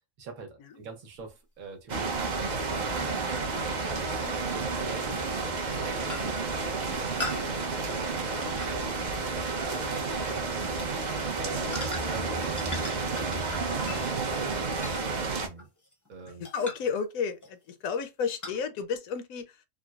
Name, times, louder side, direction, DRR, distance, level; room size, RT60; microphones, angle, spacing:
voice 1, 0.2-3.2 3.9-10.7 11.2-13.4 13.7-15.7 16.1-16.4, right 4 dB, 85° right, 1.3 m, -44 dB
sound 1, 1.1-1.2 3.7-3.8 5.0-5.2 5.6-5.8 6.1-6.5 7.2-9.4 9.7-10.0 10.6-10.8 11.7-12.3 12.6-16.1 16.4-16.9 17.4-17.7 18.4-18.6, left 2 dB, 25° left, 0.4 m, -41 dB
sound 2, 1.9-15.5, right 3 dB, 55° right, 0.5 m, -31 dB
voice 2, 16.4-19.7, left 6 dB, 80° left, 1.0 m, -32 dB
3.6 x 2.0 x 2.3 m
omnidirectional pair, 1.5 m